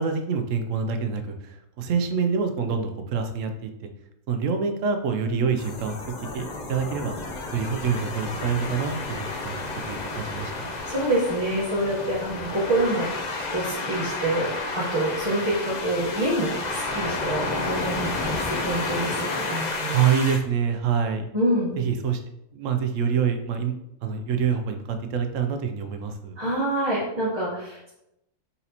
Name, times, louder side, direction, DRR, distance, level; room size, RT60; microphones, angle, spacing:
voice 1, 0.0-3.7 4.3-6.0 6.3-7.1 7.5-10.8 19.9-21.2 21.8-22.2 22.5-23.7 24.0-26.3, right 6 dB, 70° right, 7 dB, 0.9 m, -26 dB
sound 1, 5.6-20.4, left 3 dB, 55° left, 0.5 m, -31 dB
voice 2, 10.9-14.5 14.7-20.0 21.3-21.8 26.4-27.9, right 1 dB, 20° right, -9 dB, 0.9 m, -26 dB
4.1 x 4.1 x 2.8 m, 0.86 s
omnidirectional pair, 1.4 m